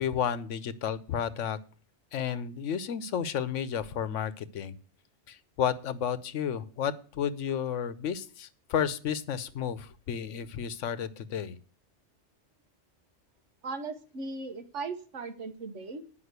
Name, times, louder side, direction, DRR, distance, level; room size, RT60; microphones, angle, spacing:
voice 1, 0.0-1.6 2.1-4.7 5.3-11.6, left 8 dB, 90° left, 14 dB, 1.1 m, -32 dB
voice 2, 13.6-16.0, right 3 dB, 85° right, 8 dB, 1.5 m, -38 dB
9.7 x 5.7 x 8.1 m, 0.41 s
omnidirectional pair, 1.2 m